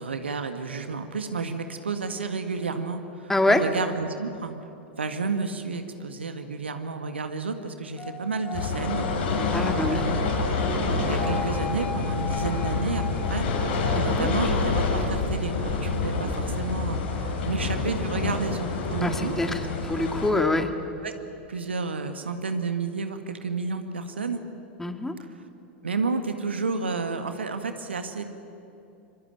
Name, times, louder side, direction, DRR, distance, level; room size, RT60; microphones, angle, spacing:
voice 1, 0.0-4.6 5.0-9.1 9.4-9.6 9.8-10.3 11.0-13.4 13.9-19.7 21.0-21.1 21.5-24.4 25.8-28.2, right 4 dB, 75° right, 7 dB, 1.8 m, -31 dB
voice 2, 3.3-3.6 9.5-10.0 13.9-14.3 19.0-20.7 24.8-25.2, left 2 dB, 5° left, 7 dB, 2.1 m, -25 dB
sound 1, 8.0-15.5, left 4 dB, 25° left, 4.3 m, -39 dB
sound 2, 8.5-20.3, left 3 dB, 60° left, 6.2 m, -27 dB
25.0 x 24.0 x 9.0 m, 2.8 s
figure-of-eight pair, 90°, 6 cm